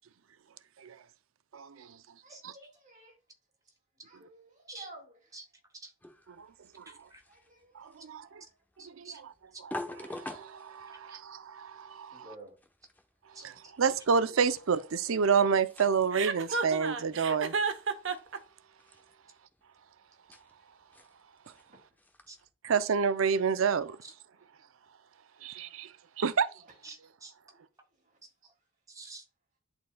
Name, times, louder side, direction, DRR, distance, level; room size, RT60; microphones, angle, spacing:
voice 1, 1.5-1.9 2.4-2.5 6.4-6.5 6.8-6.9 7.8-8.4 8.8-9.3 9.6-12.3 13.4-17.5 22.6-24.0 25.4-25.9 26.2-26.5, right 6 dB, 80° right, 0.5 m, -29 dB
voice 2, 2.2-3.1 4.1-5.0 12.1-12.5 16.5-16.6, right 2 dB, 35° right, 2.3 m, -50 dB
sound 1, 6.0-22.5, left 1 dB, 10° left, 0.8 m, -49 dB
voice 3, 6.9-7.2 8.8-9.2 11.1-11.2 13.3-13.4 22.3-22.4 24.0-24.1 26.8-27.3 28.9-29.2, right 3 dB, 15° right, 1.2 m, -48 dB
Chuckle chortle, 16.1-18.4, right 5 dB, 65° right, 0.9 m, -31 dB
11.0 x 4.4 x 2.2 m
head